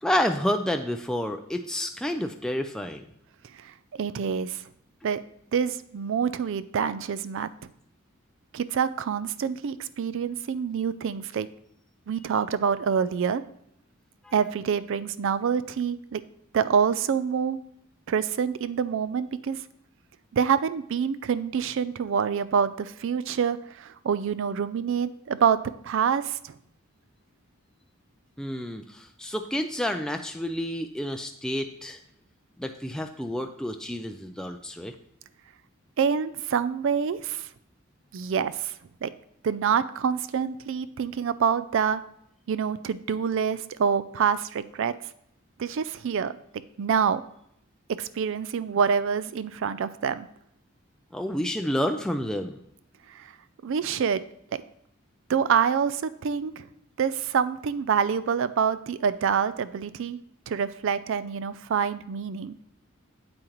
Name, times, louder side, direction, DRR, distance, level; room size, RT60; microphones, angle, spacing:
voice 1, 0.0-3.0 28.4-32.0 32.6-34.9 51.1-52.6, equal, 5° left, 5 dB, 0.4 m, -29 dB
voice 2, 3.5-4.6 5.0-5.2 5.5-7.5 8.5-11.5 12.1-13.4 14.3-16.2 16.5-17.6 18.1-19.6 20.3-26.6 36.0-37.5 38.1-38.7 39.0-39.1 39.4-42.0 42.5-44.9 45.6-46.4 46.8-47.2 47.9-50.3 53.1-53.3 53.6-54.2 54.5-54.6 55.3-56.7 57.0-60.2 60.5-62.6, right 7 dB, 65° right, 15 dB, 0.4 m, -26 dB
8.5 x 7.8 x 3.0 m, 0.73 s
head